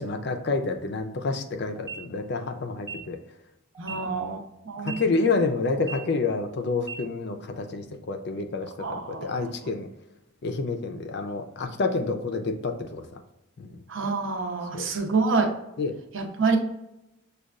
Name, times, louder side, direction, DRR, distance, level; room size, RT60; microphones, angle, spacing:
voice 1, 0.0-3.2 3.9-4.4 4.8-9.9 10.4-13.2 13.6-13.8 14.7-14.9 15.8-16.0, left 3 dB, 50° left, 6 dB, 0.4 m, -29 dB
sound 1, 1.7-2.0 2.7-2.9 3.7-4.0 4.7-4.9 5.7-6.0 6.7-6.9, right 6 dB, 15° right, 0.4 m, -37 dB
voice 2, 3.8-5.0 8.8-9.4 13.9-15.5 16.1-16.6, right 4 dB, 65° right, 3 dB, 0.6 m, -27 dB
6.3 x 2.3 x 2.4 m, 0.90 s
head